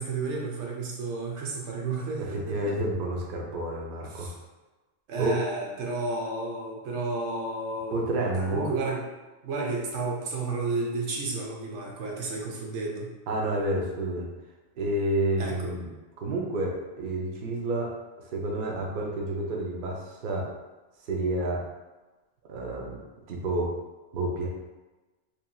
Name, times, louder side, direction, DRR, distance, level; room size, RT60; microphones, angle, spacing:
voice 1, 0.0-2.8 4.1-4.3 5.1-8.0 8.3-9.0 9.4-13.1 15.4-15.7, right 3 dB, 75° right, -1 dB, 0.9 m, -32 dB
voice 2, 2.2-4.3 5.2-5.4 7.9-8.7 13.3-14.3 14.8-15.9 16.2-17.9 18.2-20.5 21.1-21.6 22.5-23.0 23.3-23.7 24.1-24.5, right 1 dB, 60° right, -1 dB, 0.5 m, -29 dB
2.9 x 2.6 x 2.3 m, 1.2 s
omnidirectional pair, 1.3 m